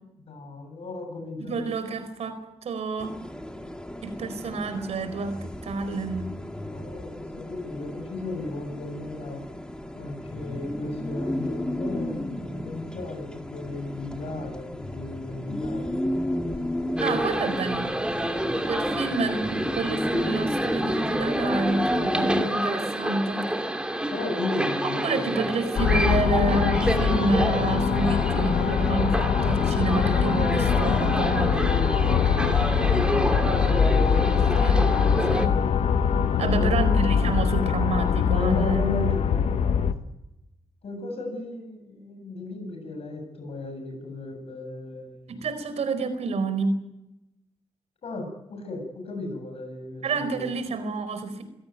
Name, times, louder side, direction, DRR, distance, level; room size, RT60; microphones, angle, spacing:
voice 1, 0.2-1.7 6.6-9.4 10.0-16.4 24.1-25.5 31.9-34.5 36.4-36.9 38.3-39.8 40.8-45.4 48.0-50.5, left 2 dB, 65° left, 4 dB, 8.0 m, -35 dB
voice 2, 1.4-3.2 4.0-6.3 17.0-17.9 18.7-23.5 25.0-31.7 34.6-34.9 35.3-35.5 36.4-38.8 45.3-46.8 50.0-51.4, right 3 dB, 85° right, 11 dB, 4.5 m, -29 dB
sound 1, 3.0-22.5, left 1 dB, 10° left, 2.4 m, -33 dB
sound 2, 17.0-35.5, right 1 dB, 10° right, 2.7 m, -29 dB
sound 3, 25.8-39.9, left 7 dB, 90° left, 1.4 m, -23 dB
26.5 x 17.0 x 9.4 m, 0.91 s
wide cardioid pair, 105°, 11 cm